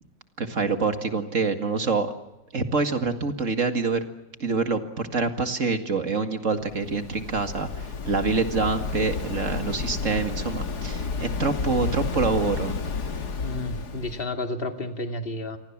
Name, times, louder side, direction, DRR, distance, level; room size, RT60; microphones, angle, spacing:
voice 1, 0.4-2.1 2.5-4.0 4.4-12.8, right 4 dB, 40° right, 8 dB, 2.4 m, -26 dB
Waves surf, 6.6-14.2, left 4 dB, 60° left, 2.3 m, -31 dB
voice 2, 13.4-15.6, left 2 dB, 30° left, 6 dB, 2.5 m, -31 dB
28.5 x 24.0 x 7.4 m, 0.94 s
omnidirectional pair, 2.0 m